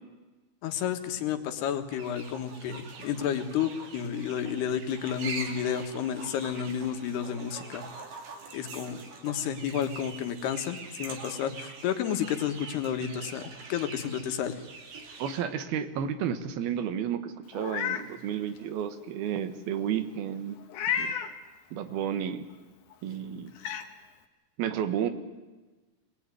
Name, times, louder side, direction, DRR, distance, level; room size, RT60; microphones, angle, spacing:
voice 1, 0.6-7.8 8.5-14.6, left 9 dB, 85° left, 7 dB, 3.6 m, -31 dB
sound 1, 1.9-15.4, right 4 dB, 60° right, 4.0 m, -44 dB
voice 2, 15.2-20.6 20.9-21.1 21.7-22.5 23.0-23.5 24.6-25.1, right 9 dB, 75° right, 10 dB, 3.1 m, -32 dB
Meow, 17.5-18.1 18.6-18.7 20.7-21.3 22.9-23.0 23.6-23.9, left 8 dB, 60° left, 2.6 m, -31 dB
26.5 x 20.0 x 9.7 m, 1.2 s
omnidirectional pair, 4.5 m